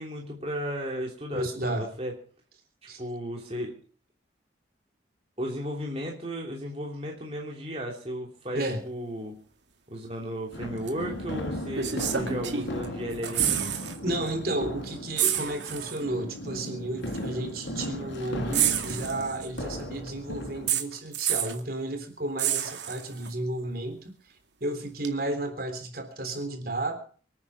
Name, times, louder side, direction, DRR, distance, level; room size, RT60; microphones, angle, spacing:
voice 1, 0.0-2.1 3.0-3.7 5.4-9.4 9.9-13.8, equal, 30° right, -1 dB, 3.0 m, -35 dB
voice 2, 1.3-1.9 2.9-3.0 8.5-8.8 14.0-24.1 24.6-27.0, right 1 dB, 50° right, 6 dB, 3.5 m, -32 dB
sound 1, 10.5-20.7, equal, 85° left, 3.7 m, -36 dB
sound 2, 10.9-11.0 11.7-12.8 13.1-14.0 14.3-14.4 15.2-16.0 17.1-17.2 18.5-19.6 20.7-21.6 22.4-23.3 25.0-25.1, right 10 dB, 75° right, 2.2 m, -28 dB
25.0 x 9.7 x 4.8 m, 0.43 s
head